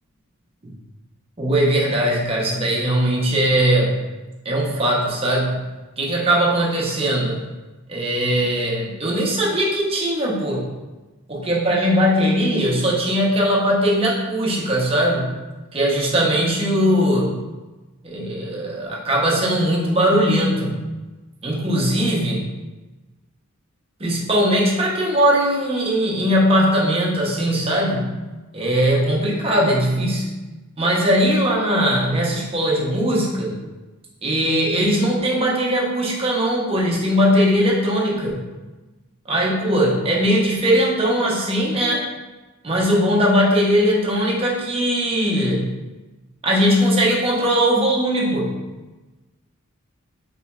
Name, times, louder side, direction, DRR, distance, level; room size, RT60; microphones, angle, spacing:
voice 1, 1.4-4.0 4.4-5.6 6.0-7.4 7.9-10.7 11.3-15.3 15.7-17.4 18.0-20.9 21.4-22.5 24.0-28.2 28.5-30.3 30.8-33.6 34.2-38.4 39.3-42.1 42.6-45.7 46.4-48.6, equal, 25° right, -3 dB, 0.6 m, -20 dB
4.1 x 3.0 x 2.2 m, 1.2 s
head